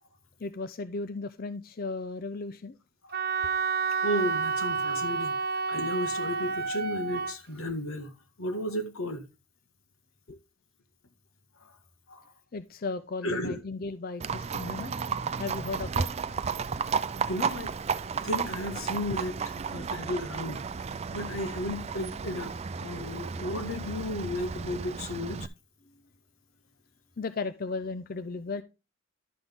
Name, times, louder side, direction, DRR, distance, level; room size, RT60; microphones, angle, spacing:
voice 1, 0.4-2.8 3.4-3.5 10.3-10.4 12.5-14.9 15.4-16.1 19.1-19.2 27.2-28.6, left 3 dB, 45° left, 0.5 m, -35 dB
Wind instrument woodwind instrument, 3.1-7.3, right 5 dB, 50° right, 0.8 m, -29 dB
voice 2, 4.0-5.3 5.7-8.1 8.4-9.2 12.1-12.2 13.2-13.6 17.3-17.7 18.2-19.3 19.7-20.6 21.1-22.5 22.8-25.5, left 1 dB, 90° left, 1.6 m, -33 dB
Livestock farm animals working animals, 14.2-25.5, right 5 dB, 30° right, 0.4 m, -33 dB
11.5 x 5.9 x 3.6 m
head